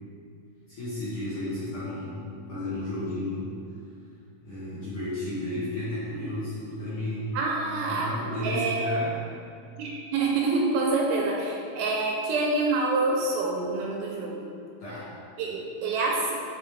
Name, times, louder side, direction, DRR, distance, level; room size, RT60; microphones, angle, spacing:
voice 1, 0.7-3.5 4.4-7.4 7.8-9.2 14.8-15.1, left 1 dB, 70° left, -11 dB, 1.4 m, -33 dB
voice 2, 7.3-8.1 8.4-8.9 9.8-14.4 15.4-16.4, right 3 dB, 80° right, -1 dB, 2.3 m, -27 dB
8.5 x 3.9 x 3.4 m, 2.5 s
omnidirectional pair, 4.6 m